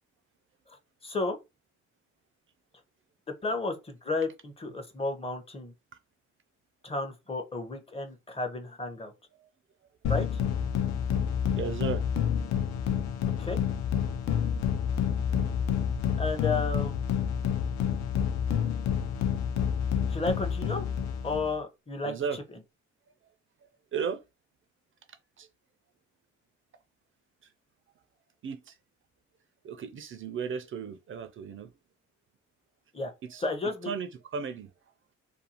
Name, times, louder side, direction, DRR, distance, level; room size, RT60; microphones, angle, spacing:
voice 1, 0.7-1.4 3.4-5.7 6.8-9.1 10.1-10.3 13.4-13.6 14.3-14.4 16.2-17.0 20.1-20.9 21.2-22.4 32.9-33.1 33.4-33.9, left 3 dB, 20° left, 0.7 m, -32 dB
sound 1, 10.0-21.5, left 8 dB, 65° left, 0.5 m, -29 dB
voice 2, 11.5-12.1 12.5-12.6 15.3-15.4 15.7-15.8 16.1-16.2 22.0-22.4 23.2-23.3 23.9-24.2 25.4-25.5 28.4-28.8 29.6-31.7 33.2-33.5 33.9-34.7, right 6 dB, 45° right, 0.4 m, -35 dB
2.5 x 2.3 x 2.8 m
cardioid pair, 90°, 30 cm